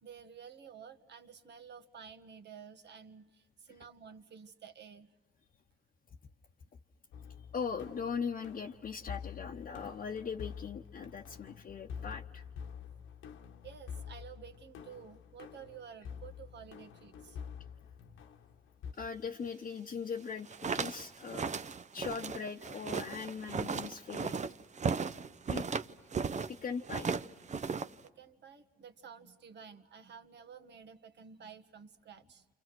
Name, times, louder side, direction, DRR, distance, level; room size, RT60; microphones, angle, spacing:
voice 1, 0.0-5.1 13.6-17.4 27.5-32.4, right 7 dB, 60° right, 8 dB, 1.6 m, -52 dB
sound 1, 7.1-18.9, left 7 dB, 80° left, 1.4 m, -47 dB
voice 2, 7.5-12.4 18.9-21.5 21.9-24.4 25.5-25.6 26.5-27.1, left 6 dB, 45° left, 1 dB, 1.0 m, -40 dB
sound 2, 20.3-26.5 26.8-28.1, right 5 dB, 35° right, 0.8 m, -36 dB
29.5 x 28.0 x 6.2 m, 1.1 s
cardioid pair, 90°, 20 cm